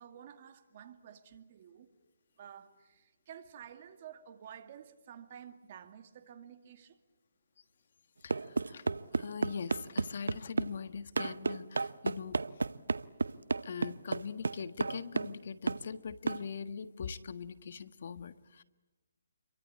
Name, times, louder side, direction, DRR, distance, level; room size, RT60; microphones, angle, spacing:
voice 1, 0.0-1.9 2.4-7.0, right 9 dB, 40° right, 2.2 m, -51 dB
voice 2, 8.2-12.4 13.6-18.6, left 6 dB, 55° left, 1.5 m, -42 dB
sound 1, 8.3-10.7 11.2-15.4 15.7-15.9 16.3-16.4, right 4 dB, 90° right, 0.9 m, -33 dB
29.5 x 23.5 x 8.5 m
hypercardioid pair, 160°, 0 cm